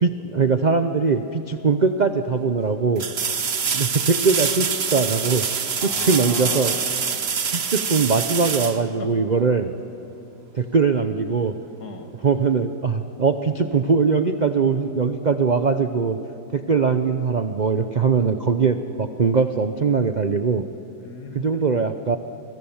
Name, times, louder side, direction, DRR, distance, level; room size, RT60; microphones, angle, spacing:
voice 1, 0.0-3.1 3.7-5.5 5.8-6.7 7.5-9.7 10.5-11.6 12.2-16.2 16.5-20.7 21.3-22.2, right 5 dB, 85° right, 8 dB, 0.4 m, -21 dB
sound 1, 1.6-1.7 3.0-9.6 12.4-12.5, right 6 dB, 40° right, 1.1 m, -25 dB
voice 2, 5.8-7.3 9.0-9.3 11.8-12.2 21.0-21.9, left 4 dB, 60° left, 5 dB, 2.5 m, -37 dB
29.0 x 23.5 x 7.2 m, 3.0 s
omnidirectional pair, 2.0 m